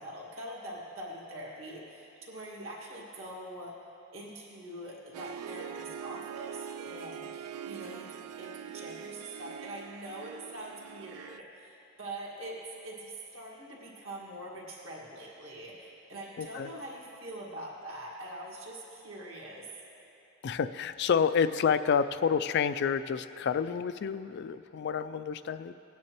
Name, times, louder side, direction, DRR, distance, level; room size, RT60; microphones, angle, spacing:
voice 1, 0.0-3.7 4.1-12.6 12.8-19.7, right 1 dB, 60° right, -4 dB, 2.0 m, -44 dB
Harp, 5.1-11.4, right 8 dB, 80° right, 0.3 m, -43 dB
voice 2, 16.4-16.7 20.4-25.7, left 6 dB, 50° left, 12 dB, 0.3 m, -29 dB
18.5 x 9.4 x 3.0 m, 2.9 s
head